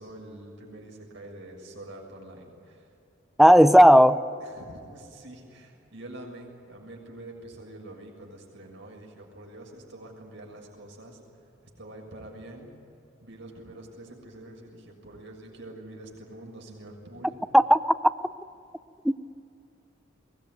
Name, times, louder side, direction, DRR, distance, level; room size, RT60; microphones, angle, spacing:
voice 1, 0.0-2.9 4.4-11.2 11.8-12.7 13.2-17.4, right 1 dB, 65° right, 0 dB, 6.7 m, -45 dB
voice 2, 3.4-4.2 17.5-17.8 19.0-19.1, equal, ahead, 11 dB, 0.6 m, -14 dB
23.0 x 20.5 x 9.6 m, 2.6 s
head